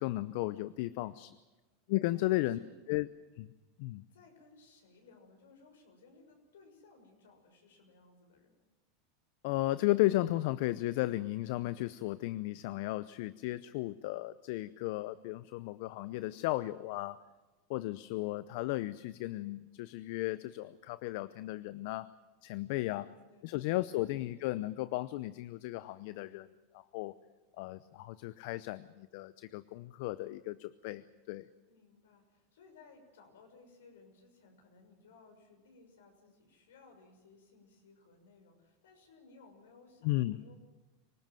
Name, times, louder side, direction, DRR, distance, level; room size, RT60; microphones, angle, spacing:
voice 1, 0.0-1.4 1.9-2.6 2.9-3.1 3.4-3.5 3.8-4.0 9.4-17.2 17.7-22.1 22.4-23.1 23.4-26.5 26.7-27.1 27.6-31.5 40.0-40.4, left 17 dB, 65° left, 16 dB, 0.7 m, -34 dB
voice 2, 2.1-2.8 4.1-8.6 22.9-24.4 31.7-40.5, left 4 dB, 80° left, 4 dB, 6.4 m, -60 dB
25.0 x 19.0 x 7.7 m, 1.1 s
hypercardioid pair, 100°, 0 cm